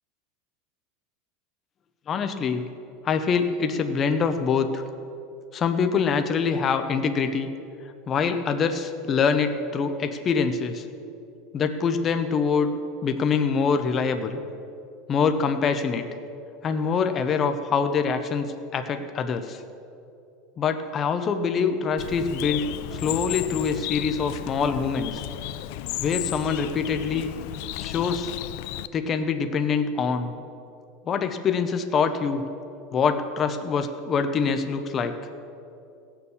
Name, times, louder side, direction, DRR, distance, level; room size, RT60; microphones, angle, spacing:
voice 1, 2.1-2.6 3.0-4.8 5.5-7.5 8.1-10.8 11.5-12.7 13.0-14.4 15.1-16.1 16.6-19.6 20.6-22.7 22.9-25.2 26.0-27.3 27.8-28.3 28.9-30.3 31.1-32.4 32.9-35.1, left 5 dB, 25° left, 8 dB, 0.7 m, -24 dB
Bird, 22.0-28.9, left 15 dB, 55° left, 0.4 m, -34 dB
17.0 x 6.9 x 7.1 m, 2.7 s
supercardioid pair, 170°, 0 cm